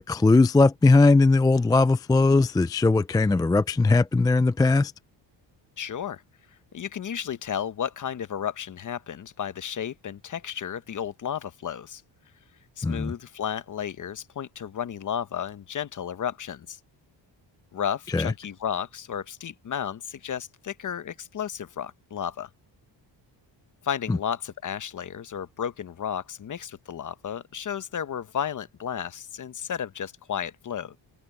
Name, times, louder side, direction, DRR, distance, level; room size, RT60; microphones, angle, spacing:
voice 1, 0.0-4.9 12.8-13.1 18.1-18.3, left 3 dB, 10° left, 0.3 m, -19 dB
voice 2, 5.8-6.2 6.7-12.0 12.8-16.8 17.7-22.5 23.8-31.0, left 8 dB, 40° left, 1.0 m, -33 dB
cardioid pair, 110°, 45 cm